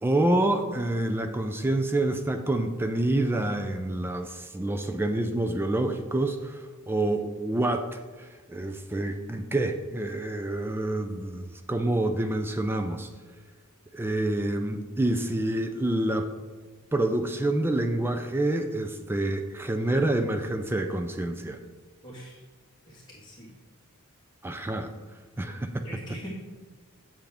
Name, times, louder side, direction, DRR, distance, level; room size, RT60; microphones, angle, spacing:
voice 1, 0.0-13.1 13.9-16.3 16.9-21.6 24.4-24.9 25.4-25.8, right 1 dB, 10° right, 7 dB, 0.3 m, -27 dB
voice 2, 22.0-22.4 22.9-23.5 25.8-26.3, equal, 20° left, -9 dB, 1.7 m, -43 dB
7.8 x 7.1 x 3.4 m, 1.4 s
head